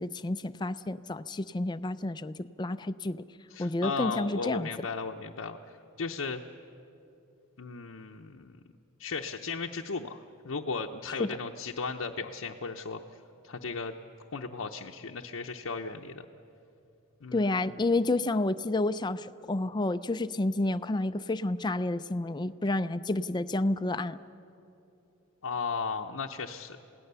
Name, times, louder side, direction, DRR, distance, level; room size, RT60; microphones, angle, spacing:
voice 1, 0.0-3.2 3.6-4.9 11.2-11.3 17.3-24.2, left 2 dB, 20° left, 12 dB, 0.4 m, -30 dB
voice 2, 3.5-5.6 6.0-6.4 7.6-8.6 9.0-13.0 13.4-13.9 14.3-16.3 17.2-17.8 25.4-26.8, left 4 dB, 80° left, 1 dB, 0.8 m, -36 dB
28.0 x 17.5 x 6.9 m, 2.8 s
head